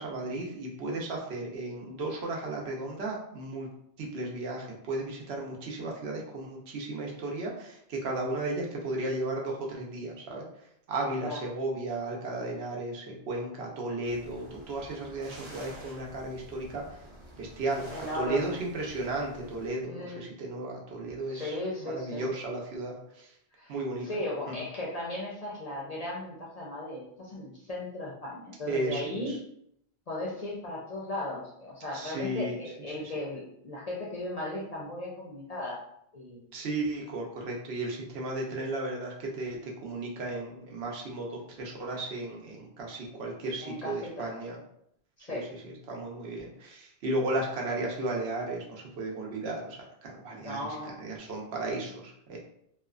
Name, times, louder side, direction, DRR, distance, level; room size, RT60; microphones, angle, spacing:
voice 1, 0.0-3.7 4.0-10.4 10.9-16.8 17.4-21.6 21.8-23.3 23.7-24.1 24.5-24.6 28.7-29.4 31.9-32.6 33.0-33.1 36.5-44.6 45.3-49.8 50.0-52.4, right 2 dB, 75° right, -1 dB, 0.9 m, -34 dB
sound 1, 14.0-19.7, right 1 dB, 40° right, 0.4 m, -49 dB
voice 2, 17.9-18.6 19.9-20.2 21.3-22.3 23.5-23.8 24.0-29.4 30.1-35.9 36.1-36.4 43.6-44.4 45.2-45.5 50.4-51.0, left 1 dB, 50° left, -4 dB, 0.5 m, -36 dB
2.8 x 2.1 x 2.3 m, 0.73 s
omnidirectional pair, 1.1 m